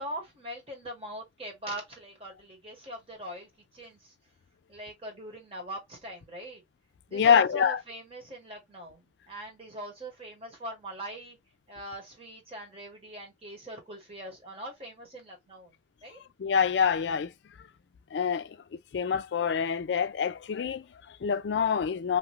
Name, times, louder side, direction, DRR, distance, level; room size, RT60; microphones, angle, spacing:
voice 1, 0.0-4.1 4.7-6.6 7.1-11.4 11.7-15.7 16.0-16.2, right 1 dB, 30° right, 1.1 m, -42 dB
voice 2, 7.1-7.8 16.4-17.3 17.6-17.7 18.1-22.2, left 7 dB, 70° left, 0.4 m, -26 dB
2.7 x 2.4 x 3.0 m
head